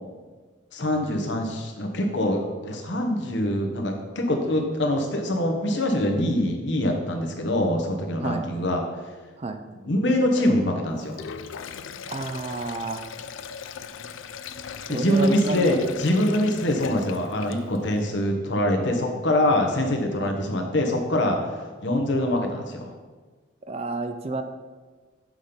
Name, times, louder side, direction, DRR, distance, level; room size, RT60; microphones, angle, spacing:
voice 1, 0.7-8.8 9.9-11.2 14.9-21.4 21.8-22.9, left 1 dB, 65° left, 2 dB, 1.1 m, -24 dB
Sink (filling or washing), 11.0-17.9, left 6 dB, 80° left, 0.4 m, -38 dB
voice 2, 12.1-13.0 14.9-15.9 20.2-20.3 23.7-24.4, right 2 dB, 30° right, 8 dB, 0.4 m, -30 dB
6.3 x 5.6 x 5.1 m, 1.4 s
head